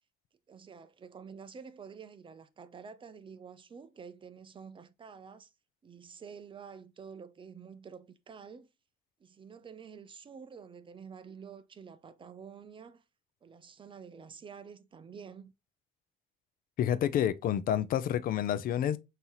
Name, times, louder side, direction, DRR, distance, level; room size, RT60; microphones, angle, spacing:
voice 1, 0.5-5.5 5.8-8.7 9.2-13.0 13.4-15.5, right 6 dB, 30° right, 0.5 m, -49 dB
voice 2, 16.8-19.0, left 10 dB, 60° left, 0.5 m, -29 dB
5.5 x 2.8 x 2.9 m
cardioid pair, 110°, 17 cm